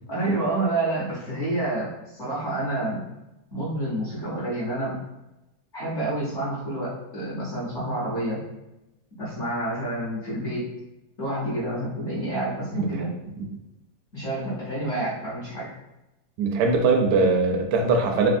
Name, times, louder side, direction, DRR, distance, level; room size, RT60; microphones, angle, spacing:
voice 1, 0.1-3.0 3.5-5.0 5.7-8.4 9.2-10.7 11.2-13.1 14.1-15.7, right 1 dB, 50° left, -10 dB, 1.1 m, -28 dB
voice 2, 16.4-18.3, right 4 dB, 75° right, 2 dB, 1.0 m, -21 dB
3.4 x 2.3 x 2.5 m, 0.96 s
omnidirectional pair, 2.0 m